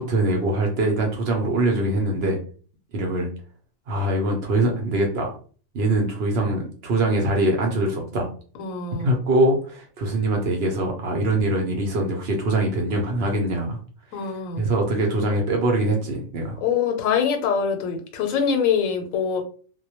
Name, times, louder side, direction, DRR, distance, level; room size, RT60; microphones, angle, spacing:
voice 1, 0.0-2.4 2.9-3.3 3.9-5.3 5.7-8.3 9.0-13.8 14.2-14.3 14.6-16.6, right 1 dB, 60° right, 2 dB, 0.7 m, -23 dB
voice 2, 8.6-9.1 14.1-14.6 16.6-19.4, left 7 dB, 90° left, 5 dB, 1.0 m, -24 dB
2.1 x 2.1 x 2.8 m, 0.41 s
omnidirectional pair, 1.3 m